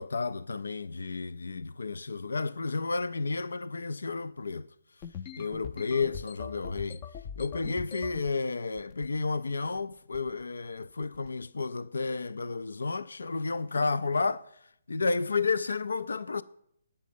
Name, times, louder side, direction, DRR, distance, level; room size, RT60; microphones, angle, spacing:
voice 1, 0.0-4.7 5.4-7.0 7.4-14.4 14.9-16.4, left 4 dB, 90° left, 0.4 m, -31 dB
sound 1, 5.0-8.3 8.8-9.3 9.5-9.8 10.1-10.4 11.0-11.3, left 8 dB, 30° left, 0.5 m, -42 dB
8.3 x 6.5 x 6.9 m
hypercardioid pair, 155°, 0 cm